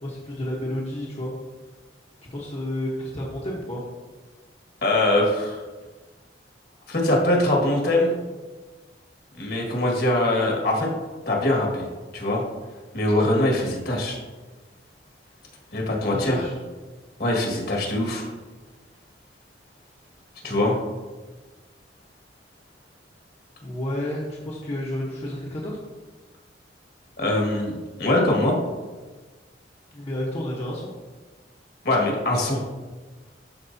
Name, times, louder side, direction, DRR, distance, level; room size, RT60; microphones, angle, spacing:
voice 1, 0.0-1.3 2.2-3.8 16.0-16.6 20.4-20.9 23.6-25.9 29.9-30.9, left 1 dB, 35° left, -5 dB, 1.1 m, -31 dB
voice 2, 4.8-5.6 6.9-8.2 9.4-10.9 11.3-11.8 12.1-12.4 12.9-14.2 15.7-16.4 17.2-18.3 20.4-20.8 27.2-28.6 31.8-32.6, left 1 dB, 60° left, -1 dB, 1.8 m, -22 dB
12.5 x 4.7 x 2.7 m, 1.3 s
head